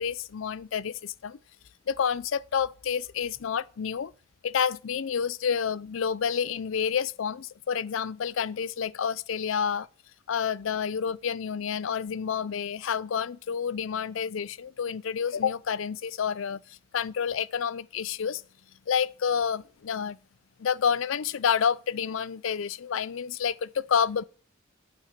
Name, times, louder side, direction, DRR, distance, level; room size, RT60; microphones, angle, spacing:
voice 1, 0.0-1.4 1.9-4.1 4.4-9.9 10.3-18.4 18.9-20.2 20.6-24.2, left 7 dB, 70° left, 0.4 m, -29 dB
8.6 x 7.7 x 5.9 m
head